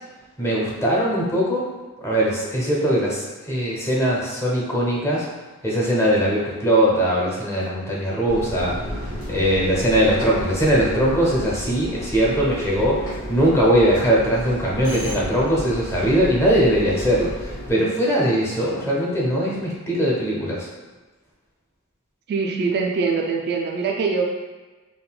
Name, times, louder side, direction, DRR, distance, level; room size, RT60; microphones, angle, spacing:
voice 1, 0.4-1.6 2.0-5.3 5.6-8.8 9.3-20.7, equal, 15° left, -4 dB, 0.6 m, -20 dB
sound 1, 8.2-17.7, equal, 65° left, 1.1 m, -32 dB
voice 2, 22.3-24.2, right 4 dB, 50° right, 1 dB, 0.3 m, -23 dB
3.6 x 2.2 x 2.3 m, 1.2 s
head